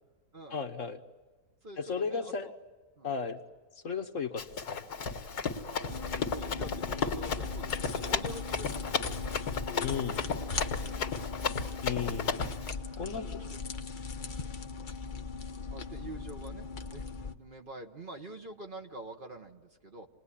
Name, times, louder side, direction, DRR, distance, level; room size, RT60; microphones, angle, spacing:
voice 1, 0.5-1.0 1.8-2.5 3.0-3.4 3.8-4.8 9.8-10.2 11.8-12.3 13.0-13.3, left 6 dB, 55° left, 5 dB, 1.4 m, -34 dB
voice 2, 1.6-2.5 3.0-3.1 5.6-9.4 9.7-10.2 10.6-11.5 13.0-13.6 14.1-14.4 15.7-20.1, right 1 dB, 35° right, 4 dB, 1.3 m, -47 dB
Run, 4.4-12.7, left 5 dB, 85° left, 2.2 m, -34 dB
sound 1, 5.9-17.3, left 4 dB, 40° left, 0.9 m, -39 dB
28.0 x 20.5 x 10.0 m, 1.3 s
omnidirectional pair, 1.7 m